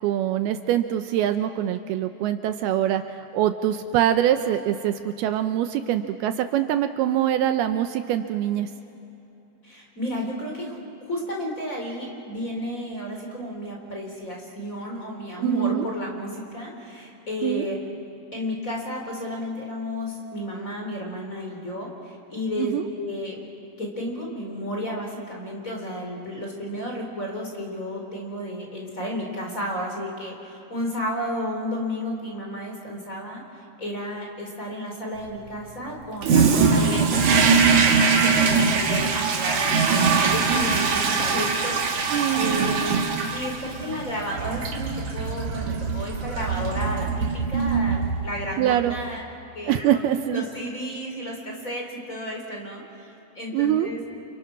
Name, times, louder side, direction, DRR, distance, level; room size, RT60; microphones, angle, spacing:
voice 1, 0.0-3.0 3.3-8.7 15.4-15.9 17.4-17.7 22.6-22.9 37.0-37.2 42.1-42.7 48.6-48.9 49.7-50.5 53.5-53.9, right 11 dB, 80° right, 8 dB, 2.6 m, -24 dB
voice 2, 9.6-10.8 11.1-17.7 18.3-23.4 23.8-43.0 43.3-49.2 49.5-50.0 50.3-54.0, equal, 20° left, 0 dB, 4.0 m, -32 dB
Toilet flush, 36.2-48.5, right 5 dB, 55° right, 2.9 m, -22 dB
29.5 x 29.0 x 6.1 m, 2.9 s
omnidirectional pair, 4.7 m